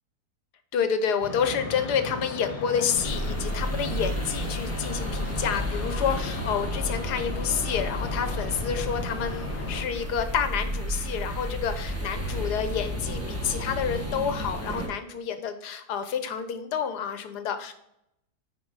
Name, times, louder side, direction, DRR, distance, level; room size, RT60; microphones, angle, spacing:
voice 1, 0.7-17.7, left 7 dB, 85° left, 9 dB, 1.4 m, -29 dB
sound 1, 1.2-9.8, left 3 dB, 65° left, 1.7 m, -36 dB
sound 2, 3.0-14.9, equal, 10° right, 1.1 m, -32 dB
9.8 x 4.7 x 3.9 m, 0.79 s
omnidirectional pair, 1.7 m